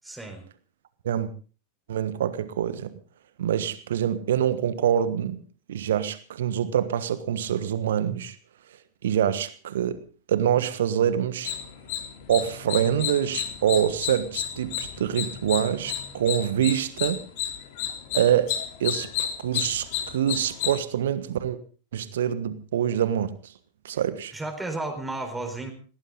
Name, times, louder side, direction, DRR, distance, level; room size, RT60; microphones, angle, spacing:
voice 1, 0.0-0.4 24.3-25.7, right 2 dB, 10° right, 4.3 m, -33 dB
voice 2, 1.9-2.9 3.4-5.4 5.7-8.3 9.0-10.0 10.3-11.5 12.3-17.2 18.1-18.5 18.8-21.6 21.9-23.5 23.8-24.3, right 9 dB, 60° right, 1.4 m, -25 dB
sound 1, 11.4-20.8, left 10 dB, 50° left, 3.2 m, -32 dB
20.0 x 18.0 x 3.9 m
figure-of-eight pair, 90°, 0 cm